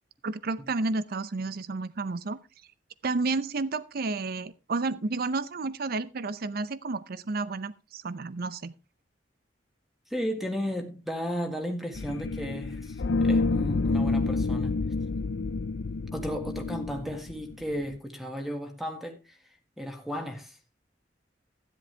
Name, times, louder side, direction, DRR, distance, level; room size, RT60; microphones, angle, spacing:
voice 1, 0.2-2.4 3.0-8.7, right 3 dB, 55° right, 0.6 m, -31 dB
voice 2, 10.1-14.8 16.1-19.4 19.8-20.6, equal, ahead, 1.9 m, -34 dB
sound 1, 11.9-17.9, left 3 dB, 80° left, 0.6 m, -28 dB
13.0 x 10.5 x 3.3 m
head